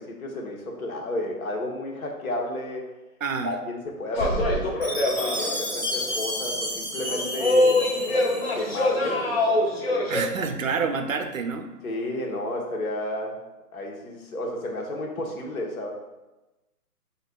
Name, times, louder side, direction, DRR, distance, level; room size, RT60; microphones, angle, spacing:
voice 1, 0.0-2.9 3.4-8.3 8.5-10.2 11.8-13.4 13.7-15.9, left 1 dB, 65° left, 0 dB, 1.1 m, -32 dB
voice 2, 3.2-3.5 10.1-11.7, right 5 dB, 60° right, 6 dB, 0.5 m, -28 dB
sound 1, 4.1-5.7 6.0-6.1 7.0-10.2, left 2 dB, 40° left, 0.6 m, -24 dB
Chime, 4.8-8.9, left 1 dB, 15° right, 0.7 m, -31 dB
7.2 x 2.6 x 2.2 m, 1.0 s
hypercardioid pair, 165°, 46 cm